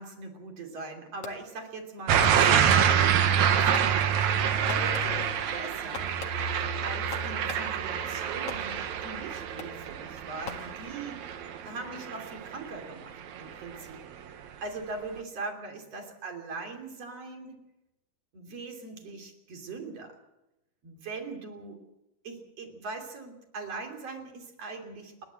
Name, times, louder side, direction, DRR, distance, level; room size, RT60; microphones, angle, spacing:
voice 1, 0.0-4.2 4.6-6.2 6.8-11.2 11.6-14.0 14.3-17.6 18.3-20.2 20.8-21.8 22.2-25.2, right 3 dB, 40° right, 4 dB, 3.8 m, -41 dB
Fireworks, 1.2-1.7 2.2-3.2 3.6-4.4 4.7-5.4 5.9-7.9 8.5-9.1 9.6-10.0 10.4-11.2, left 6 dB, 50° left, 2.1 m, -44 dB
sound 1, 2.1-12.9 13.3-13.7, right 8 dB, 65° right, 2.0 m, -26 dB
29.5 x 11.5 x 7.7 m, 0.93 s
omnidirectional pair, 4.7 m